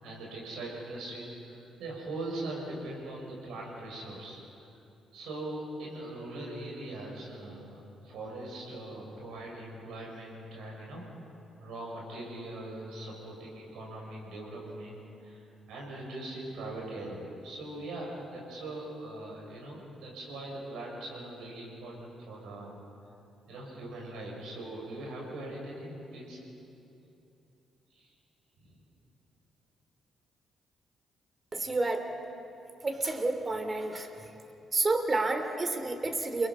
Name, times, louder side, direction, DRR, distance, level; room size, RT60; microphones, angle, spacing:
voice 1, 0.0-4.7 5.1-11.0 11.6-22.8 23.5-26.4 27.9-28.1 28.6-28.8, right 1 dB, 65° right, -3 dB, 6.9 m, -41 dB
voice 2, 31.5-32.1 32.8-34.1 34.7-36.5, right 2 dB, 30° right, 7 dB, 3.0 m, -29 dB
30.0 x 21.0 x 5.6 m, 2.9 s
figure-of-eight pair, 40°, 0 cm